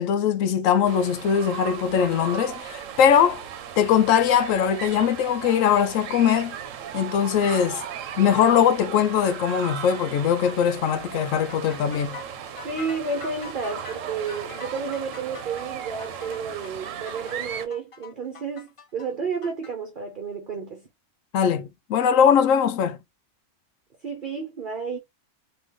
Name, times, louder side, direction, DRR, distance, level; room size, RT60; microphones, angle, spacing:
voice 1, 0.0-3.4 3.8-6.5 6.9-7.8 8.2-12.2 21.3-23.0, left 8 dB, 80° left, 1.0 m, -21 dB
sound 1, 0.9-17.7, right 8 dB, 75° right, 1.0 m, -37 dB
sound 2, 11.2-19.7, left 6 dB, 35° left, 0.5 m, -44 dB
voice 2, 12.6-20.9 24.0-25.0, right 5 dB, 45° right, 0.9 m, -31 dB
3.7 x 2.9 x 3.0 m
omnidirectional pair, 1.4 m